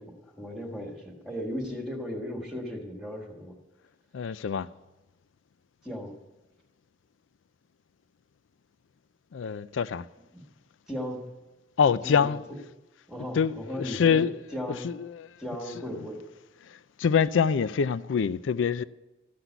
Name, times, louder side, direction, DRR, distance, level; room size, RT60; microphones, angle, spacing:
voice 1, 0.0-3.6 5.8-6.2 10.3-10.4 10.9-11.2 12.0-12.3 13.1-14.8 15.4-16.2, equal, ahead, 1.7 m, -36 dB
voice 2, 4.1-4.7 9.3-10.0 11.8-12.4 13.3-14.3 14.8-15.2 17.0-18.8, left 6 dB, 85° left, 0.4 m, -25 dB
14.5 x 6.0 x 9.3 m
head